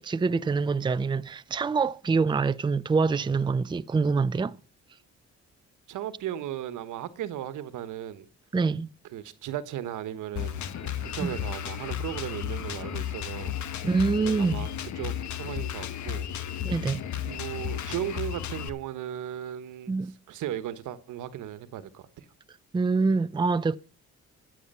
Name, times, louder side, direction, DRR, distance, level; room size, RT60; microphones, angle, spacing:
voice 1, 0.0-4.6 8.5-8.9 11.2-11.3 13.8-14.7 16.6-17.0 19.9-20.1 22.7-23.8, right 4 dB, 15° right, 0.5 m, -25 dB
voice 2, 5.9-8.2 9.1-13.5 14.2-16.5 17.2-19.9 20.3-22.3, right 11 dB, 85° right, 1.3 m, -36 dB
Drum kit, 10.4-18.7, left 10 dB, 70° left, 1.3 m, -34 dB
14.5 x 8.6 x 5.6 m
cardioid pair, 90°, 30 cm